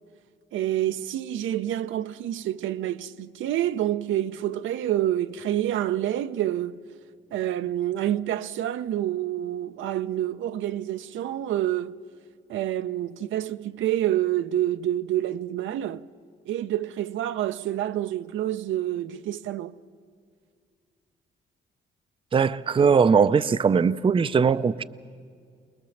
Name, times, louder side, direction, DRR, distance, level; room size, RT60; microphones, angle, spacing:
voice 1, 0.5-6.8 7.3-12.0 12.5-16.1 16.5-19.8, right 12 dB, 75° right, 0.6 m, -28 dB
voice 2, 22.3-24.8, right 6 dB, 25° right, 0.5 m, -20 dB
23.0 x 20.5 x 7.1 m
cardioid pair, 90°, 20 cm